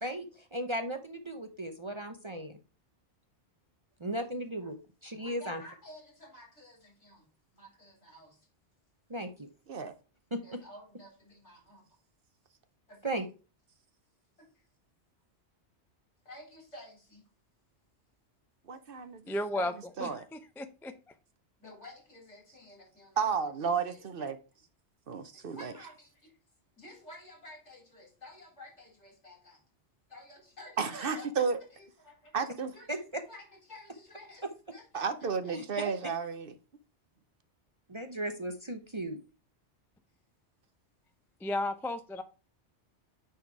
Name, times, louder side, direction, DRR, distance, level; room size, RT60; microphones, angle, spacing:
voice 1, 0.0-2.5 4.0-4.8 5.0-5.6 9.1-9.5 10.3-10.6 13.0-13.2 32.9-33.2 35.5-35.9 37.9-39.2, right 1 dB, 30° right, 0.7 m, -36 dB
voice 2, 5.1-7.3 7.5-8.5 10.4-11.8 12.9-13.3 14.4-14.5 16.2-17.3 21.6-23.4 23.7-24.4 25.3-26.3 26.8-29.6 30.1-32.4 32.7-35.8 38.0-38.2, left 1 dB, 80° left, 4.1 m, -52 dB
voice 3, 18.7-19.7 20.0-20.2 23.2-24.4 25.1-25.7 30.8-31.6 32.3-32.7 34.9-36.5, right 5 dB, 55° right, 0.9 m, -32 dB
voice 4, 19.3-20.9 41.4-42.2, left 1 dB, 5° left, 0.4 m, -34 dB
9.2 x 4.1 x 4.6 m
omnidirectional pair, 1.2 m